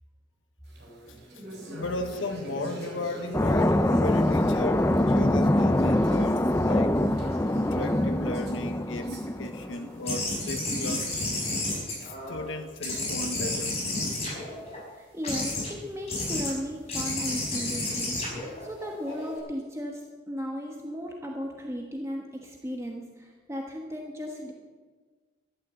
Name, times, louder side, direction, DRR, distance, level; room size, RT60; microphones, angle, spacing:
sound 1, 0.7-11.2, equal, 55° right, 5.3 m, -41 dB
voice 1, 1.7-7.0 7.5-11.4 12.0-13.8, left 2 dB, 90° left, 1.0 m, -36 dB
sound 2, 3.3-9.7, left 1 dB, 15° left, 0.4 m, -24 dB
sound 3, 10.0-12.5 12.8-14.8 15.2-15.7 16.1-16.5 16.9-19.4, left 2 dB, 35° left, 5.6 m, -31 dB
voice 2, 14.9-18.2 18.6-24.5, equal, 15° right, 1.2 m, -36 dB
13.0 x 12.0 x 7.6 m
head